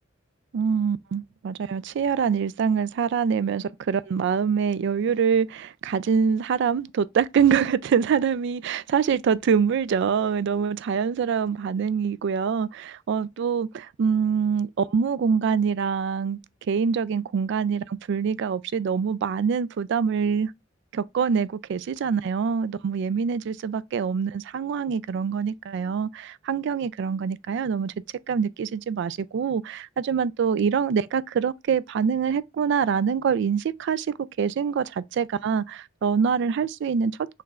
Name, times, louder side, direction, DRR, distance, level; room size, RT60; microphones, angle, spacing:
voice 1, 0.5-16.4 16.7-20.5 20.9-27.9 28.3-34.1 34.4-37.2, right 6 dB, 65° right, 0.3 m, -25 dB
5.7 x 3.1 x 2.4 m
head